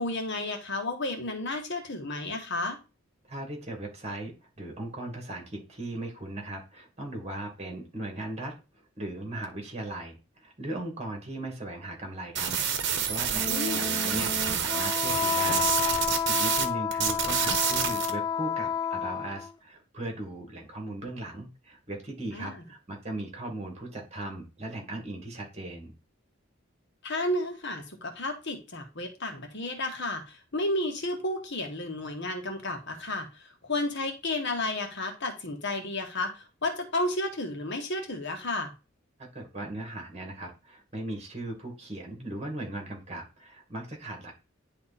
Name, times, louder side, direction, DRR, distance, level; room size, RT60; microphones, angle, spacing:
voice 1, 0.0-2.8 13.5-13.9 22.3-22.6 27.0-38.7, left 2 dB, 65° left, 4 dB, 1.6 m, -32 dB
voice 2, 3.3-25.9 39.3-44.4, right 1 dB, 35° right, 2 dB, 2.4 m, -38 dB
sound 1, 12.4-16.7 16.9-18.1, right 8 dB, 60° right, 1.1 m, -28 dB
Wind instrument woodwind instrument, 13.3-19.5, left 7 dB, 20° left, 0.3 m, -30 dB
10.0 x 3.5 x 4.2 m, 0.29 s
head